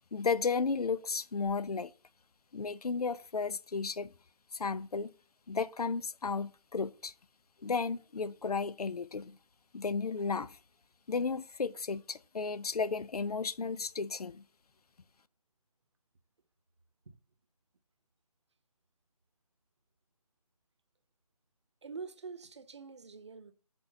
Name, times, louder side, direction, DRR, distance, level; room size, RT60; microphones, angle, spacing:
voice 1, 0.1-1.9 2.5-4.1 4.5-5.1 5.5-7.1 7.6-9.4 9.7-10.6 11.1-14.4, left 4 dB, 70° left, 0.6 m, -33 dB
voice 2, 21.8-23.5, right 5 dB, 45° right, 0.9 m, -45 dB
6.3 x 4.5 x 6.6 m
figure-of-eight pair, 160°, 20 cm